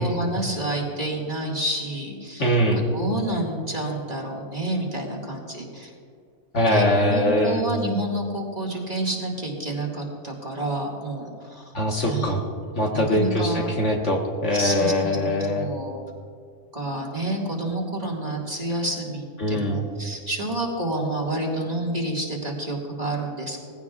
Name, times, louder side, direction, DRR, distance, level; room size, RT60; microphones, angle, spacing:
voice 1, 0.0-5.9 6.7-11.7 12.1-12.4 12.9-13.7 14.5-16.0 16.7-23.6, right 1 dB, 25° right, -2 dB, 2.0 m, -29 dB
voice 2, 2.4-2.8 6.5-7.6 11.7-12.4 12.8-15.7 19.4-19.8, left 1 dB, 55° left, -1 dB, 1.8 m, -22 dB
20.0 x 15.5 x 2.4 m, 2.2 s
omnidirectional pair, 1.5 m